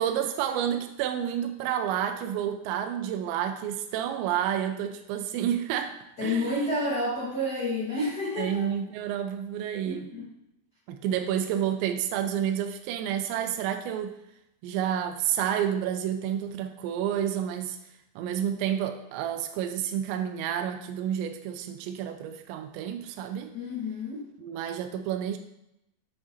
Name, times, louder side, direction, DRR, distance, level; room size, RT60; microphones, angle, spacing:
voice 1, 0.0-6.0 6.2-6.6 8.4-10.1 10.9-14.2 14.6-17.8 18.2-23.5 24.4-25.4, right 9 dB, 85° right, 6 dB, 2.8 m, -30 dB
voice 2, 6.2-8.7 9.8-10.3 23.5-24.2, left 1 dB, 65° left, -8 dB, 0.9 m, -30 dB
8.4 x 7.9 x 3.0 m, 0.84 s
omnidirectional pair, 5.2 m